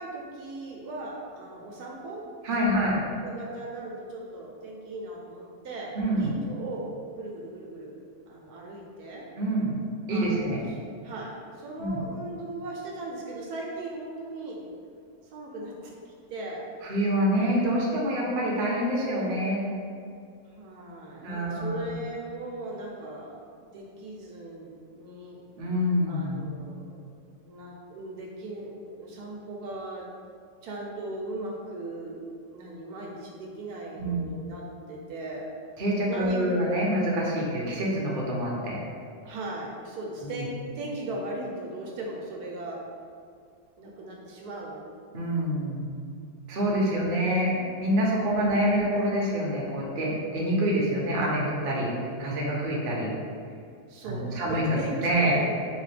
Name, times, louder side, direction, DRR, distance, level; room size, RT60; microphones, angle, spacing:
voice 1, 0.0-2.2 2.6-2.9 3.2-6.9 7.2-8.0 8.3-9.2 10.1-10.8 11.0-14.7 15.3-16.6 20.5-25.4 26.1-27.1 27.4-30.1 30.6-32.2 32.5-35.5 36.1-36.4 39.2-42.8 43.8-44.9 46.9-47.0 53.9-55.5, right 2 dB, 75° right, -2 dB, 1.1 m, -38 dB
voice 2, 2.4-3.0 5.9-6.3 9.4-9.8 10.1-10.6 11.8-12.0 16.8-19.6 21.2-22.0 25.6-26.5 33.9-34.2 35.8-38.8 40.2-40.5 45.1-45.9 46.5-53.1 54.0-54.6 55.0-55.4, equal, 45° right, -4 dB, 0.7 m, -26 dB
4.0 x 3.0 x 3.2 m, 2.3 s
omnidirectional pair, 1.7 m